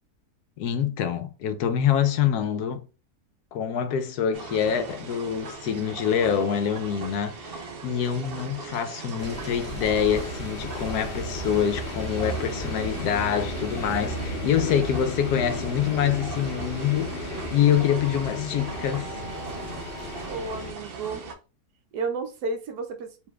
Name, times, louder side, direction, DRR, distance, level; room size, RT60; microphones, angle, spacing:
voice 1, 0.6-2.8 3.5-19.2, left 8 dB, 80° left, 1.2 m, -25 dB
sound 1, 4.3-21.3, right 4 dB, 55° right, 0.7 m, -40 dB
sound 2, 9.2-20.7, left 1 dB, 40° left, 1.0 m, -34 dB
voice 2, 20.3-21.2 21.9-23.1, right 4 dB, 80° right, 1.4 m, -31 dB
4.8 x 3.4 x 2.3 m
omnidirectional pair, 1.7 m